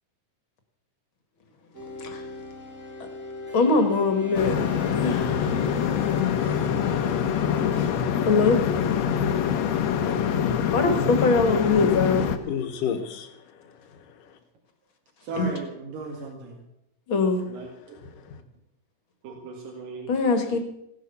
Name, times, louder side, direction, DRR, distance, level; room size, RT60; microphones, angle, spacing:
sound 1, 1.7-7.9, left 2 dB, 5° left, 2.2 m, -39 dB
voice 1, 3.5-4.5 5.0-5.5 8.2-8.6 10.7-12.3 15.3-15.5 17.1-17.4 20.1-20.6, left 4 dB, 45° left, 7 dB, 2.1 m, -22 dB
sound 2, 4.3-12.4, left 8 dB, 65° left, 2.0 m, -25 dB
voice 2, 12.4-14.3 17.9-18.4, left 8 dB, 85° left, 7 dB, 3.1 m, -34 dB
voice 3, 15.2-16.6 17.5-18.0 19.2-20.1, right 3 dB, 85° right, 0 dB, 3.7 m, -37 dB
16.5 x 11.0 x 7.0 m, 0.80 s
omnidirectional pair, 3.8 m